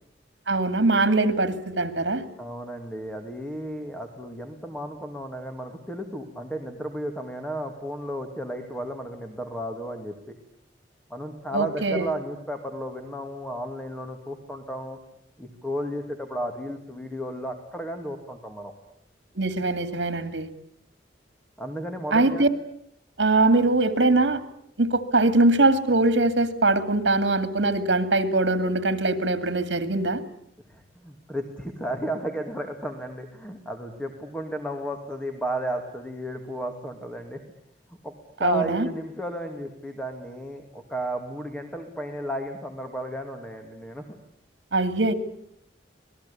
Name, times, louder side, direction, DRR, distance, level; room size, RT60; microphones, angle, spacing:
voice 1, 0.5-2.2 11.5-12.1 19.4-20.5 22.1-22.5 23.2-24.4 24.8-30.2 38.4-38.9 44.7-45.1, right 2 dB, 75° right, 10 dB, 2.4 m, -22 dB
voice 2, 2.4-10.4 11.1-15.0 15.4-18.7 21.6-22.5 30.7-37.4 37.9-38.1 38.4-44.1, right 1 dB, 5° left, 4 dB, 2.4 m, -33 dB
27.0 x 20.0 x 8.6 m, 0.73 s
head